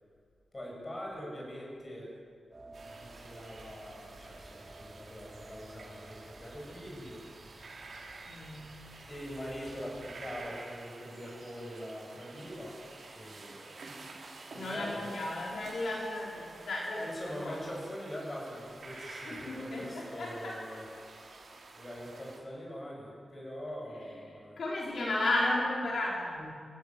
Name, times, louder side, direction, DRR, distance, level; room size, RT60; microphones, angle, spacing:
voice 1, 0.5-2.2 2.9-7.2 9.1-12.8 13.1-14.0 14.5-15.1 16.9-20.9 21.7-24.6, equal, 20° left, -2 dB, 7.3 m, -43 dB
sound 1, 2.5-10.4, right 2 dB, 20° right, 5.6 m, -54 dB
sound 2, 2.7-22.4, right 3 dB, 55° right, 4.5 m, -50 dB
voice 2, 8.3-8.7 14.5-17.7 18.9-20.8 24.6-26.5, left 2 dB, 60° left, -4 dB, 5.2 m, -34 dB
27.5 x 15.0 x 9.4 m, 2.1 s
wide cardioid pair, 175°, 0 cm